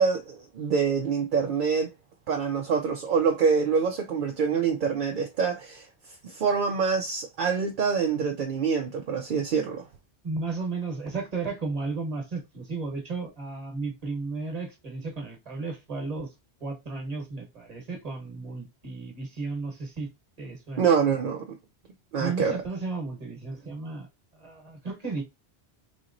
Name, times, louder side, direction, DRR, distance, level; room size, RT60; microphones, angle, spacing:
voice 1, 0.0-1.9 2.3-5.9 6.2-9.9 20.8-21.5 22.1-22.6, right 6 dB, 60° right, 0.6 m, -25 dB
voice 2, 10.2-16.3 16.6-20.1 20.4-20.9 22.2-24.1 24.4-25.2, right 3 dB, 35° right, 1.1 m, -34 dB
4.2 x 2.9 x 2.5 m
omnidirectional pair, 1.2 m